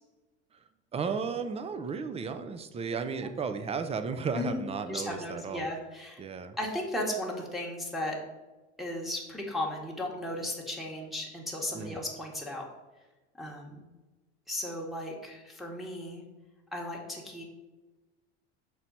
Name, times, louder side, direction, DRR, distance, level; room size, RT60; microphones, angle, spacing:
voice 1, 0.9-5.7 6.2-6.6 11.7-12.0, right 5 dB, 20° right, 9 dB, 0.5 m, -34 dB
voice 2, 4.9-6.2 6.6-8.2 8.8-12.6 13.4-13.8 14.5-16.2 16.7-17.4, left 1 dB, ahead, -3 dB, 1.2 m, -35 dB
6.2 x 4.2 x 4.0 m, 1.2 s
figure-of-eight pair, 70°, 34 cm